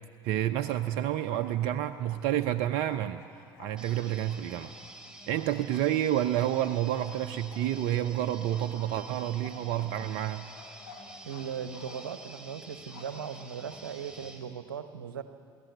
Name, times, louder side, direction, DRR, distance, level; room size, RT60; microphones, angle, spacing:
voice 1, 0.2-3.2 3.6-4.7 5.3-10.5, right 12 dB, 65° right, 9 dB, 0.7 m, -29 dB
Bark, 1.0-1.5 1.8-5.8 6.3-8.1 8.5-11.4 11.7-12.2 12.9-13.8, left 6 dB, 85° left, 3.6 m, -52 dB
sound 1, 3.8-14.4, right 1 dB, 10° right, 4.0 m, -49 dB
voice 2, 11.2-15.2, right 8 dB, 85° right, 10 dB, 1.0 m, -38 dB
22.5 x 17.0 x 8.1 m, 2.1 s
hypercardioid pair, 65°, 11 cm